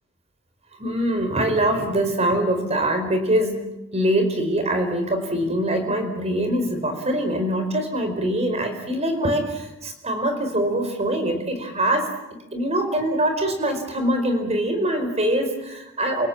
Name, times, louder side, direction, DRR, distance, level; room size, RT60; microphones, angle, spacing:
voice 1, 0.8-3.6 3.9-12.1 12.5-16.3, right 1 dB, 30° right, 6 dB, 4.7 m, -23 dB
28.5 x 17.5 x 8.7 m, 0.93 s
head